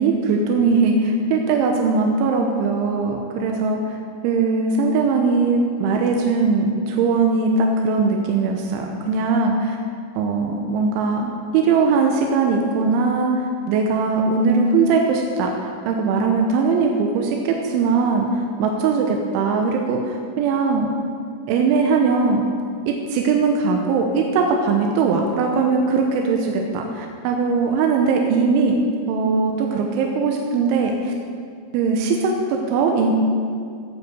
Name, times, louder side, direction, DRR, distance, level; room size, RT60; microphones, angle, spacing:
voice 1, 0.0-4.0 4.2-9.8 10.2-13.3 13.7-20.9 21.5-22.4 22.9-28.8 29.1-31.1 31.7-33.1, right 4 dB, 90° right, 2 dB, 3.4 m, -20 dB
14.0 x 8.5 x 6.7 m, 2.3 s
omnidirectional pair, 5.3 m